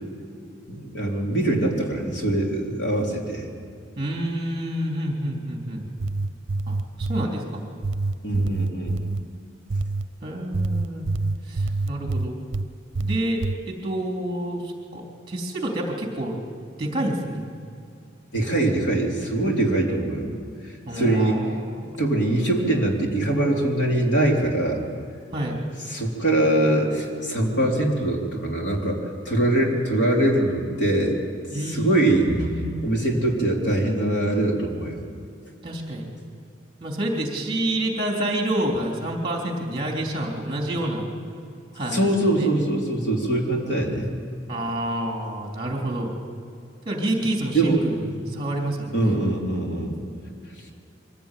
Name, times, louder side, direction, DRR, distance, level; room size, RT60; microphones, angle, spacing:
voice 1, 0.7-3.5 8.2-9.0 18.3-20.3 20.9-21.4 22.0-24.8 25.9-31.2 31.7-32.3 32.8-35.0 41.9-44.1 47.5-47.8 48.9-50.0, right 1 dB, 65° left, -1 dB, 3.8 m, -23 dB
voice 2, 4.0-5.8 6.7-7.6 10.2-11.1 11.5-12.4 13.0-16.4 16.8-17.5 20.9-22.0 25.3-25.6 29.9-30.1 31.5-33.0 35.6-36.1 36.8-41.1 41.7-42.5 44.5-46.1 46.9-49.2, right 1 dB, 25° right, 0 dB, 3.4 m, -28 dB
sound 1, 5.8-7.3 7.8-9.2 9.7-10.1 10.5-12.7 12.9-13.6, right 3 dB, 75° right, 0.6 m, -26 dB
24.0 x 16.5 x 9.3 m, 2.5 s
head